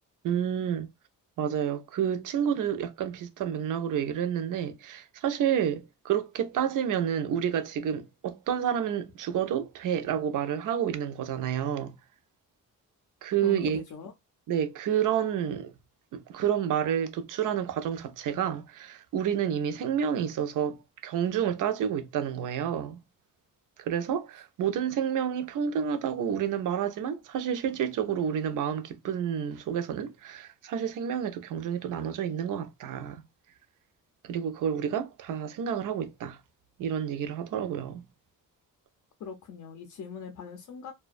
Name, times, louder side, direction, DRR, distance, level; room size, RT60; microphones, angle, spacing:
voice 1, 0.2-0.9 1.4-12.0 13.2-13.8 14.5-15.7 16.1-23.0 23.8-33.2 34.2-36.4 36.8-38.0, right 9 dB, 70° right, 0.5 m, -29 dB
voice 2, 13.4-14.1 39.2-40.9, left 6 dB, 60° left, 0.4 m, -41 dB
2.4 x 2.2 x 2.4 m
wide cardioid pair, 160°, 33 cm